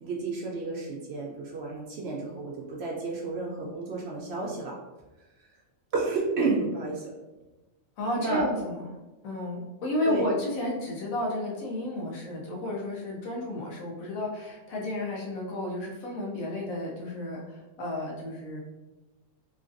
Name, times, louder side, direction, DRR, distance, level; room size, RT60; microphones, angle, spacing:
voice 1, 0.0-4.8 5.9-7.1 8.2-8.5 10.1-10.3, right 3 dB, 65° right, -2 dB, 0.7 m, -31 dB
voice 2, 8.0-8.9 9.2-18.6, left 1 dB, 80° left, -3 dB, 1.2 m, -32 dB
3.1 x 2.5 x 2.5 m, 1.1 s
omnidirectional pair, 1.4 m